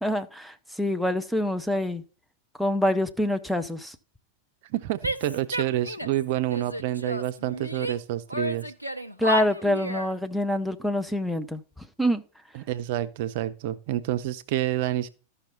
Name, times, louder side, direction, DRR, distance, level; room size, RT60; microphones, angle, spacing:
voice 1, 0.0-2.0 2.6-3.9 9.2-11.6 12.0-12.2, left 1 dB, ahead, 0.9 m, -26 dB
voice 2, 4.7-8.7 12.5-15.1, right 13 dB, 50° right, 0.6 m, -28 dB
Female speech woman speaking / Yell, 5.0-6.2 6.5-8.0 8.3-10.1, right 1 dB, 90° left, 0.7 m, -32 dB
13.0 x 5.7 x 4.0 m
figure-of-eight pair, 90°, 0 cm